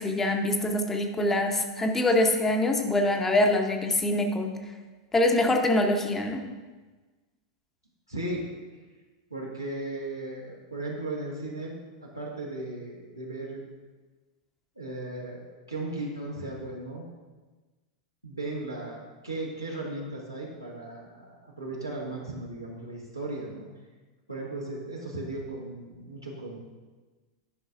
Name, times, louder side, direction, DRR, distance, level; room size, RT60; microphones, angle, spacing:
voice 1, 0.0-4.5 5.1-6.4, left 1 dB, 15° left, 3 dB, 0.7 m, -24 dB
voice 2, 8.1-8.4 9.3-13.6 14.8-17.1 18.2-23.7 24.3-26.6, right 2 dB, 90° right, -3 dB, 1.4 m, -36 dB
10.5 x 5.4 x 2.5 m, 1.3 s
figure-of-eight pair, 90°, 2 cm